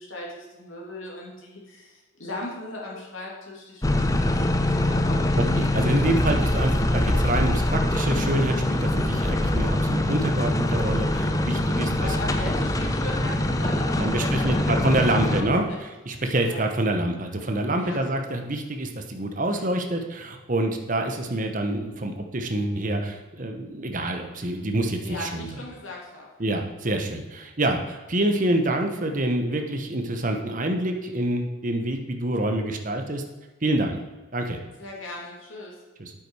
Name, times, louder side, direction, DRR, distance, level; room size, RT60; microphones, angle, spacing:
voice 1, 0.0-5.4 11.7-15.8 16.4-16.6 17.8-18.0 25.0-26.3 34.8-35.8, left 1 dB, 75° left, -3 dB, 2.9 m, -38 dB
sound 1, 3.8-15.4, left 1 dB, 15° left, 0.5 m, -23 dB
voice 2, 5.4-12.1 14.0-25.5 26.4-33.2 33.6-34.0 34.3-34.6 36.0-36.1, right 1 dB, 40° right, 4 dB, 1.0 m, -26 dB
8.6 x 8.4 x 4.8 m, 1.2 s
head